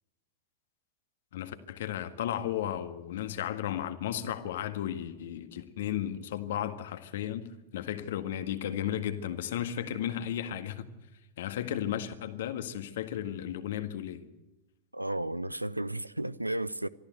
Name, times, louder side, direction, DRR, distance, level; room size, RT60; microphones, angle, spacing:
voice 1, 1.3-10.9 11.4-14.2, left 11 dB, 60° left, 1.7 m, -34 dB
voice 2, 14.9-16.9, right 1 dB, 85° right, 0.6 m, -33 dB
23.5 x 14.0 x 8.0 m
figure-of-eight pair, 90°, 0 cm